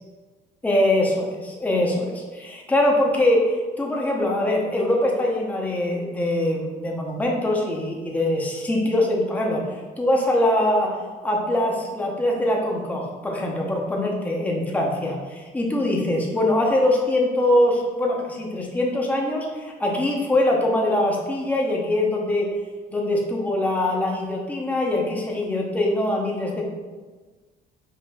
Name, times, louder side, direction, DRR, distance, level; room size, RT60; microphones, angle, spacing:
voice 1, 0.6-22.5 22.9-26.7, left 1 dB, 10° left, -2 dB, 0.6 m, -23 dB
4.9 x 2.6 x 2.2 m, 1.3 s
cardioid pair, 110°, 17 cm